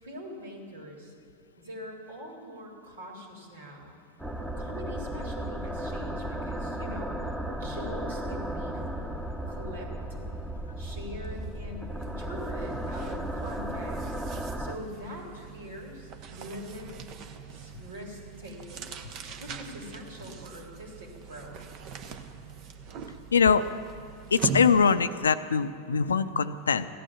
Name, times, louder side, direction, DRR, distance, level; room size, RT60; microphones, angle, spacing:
voice 1, 0.0-1.1 1.6-4.0 4.6-8.8 9.5-10.3 10.8-14.2 14.6-16.9 17.5-18.9 19.4-21.6, equal, 70° right, 0 dB, 3.4 m, -43 dB
sound 1, 4.2-14.8, right 1 dB, 10° right, 1.2 m, -35 dB
sound 2, 11.2-11.4 11.7-25.2, right 6 dB, 45° right, 1.1 m, -41 dB
voice 2, 23.3-23.6 24.3-26.9, left 6 dB, 80° left, 12 dB, 0.6 m, -23 dB
15.5 x 12.0 x 7.3 m, 2.4 s
figure-of-eight pair, 90°, 0 cm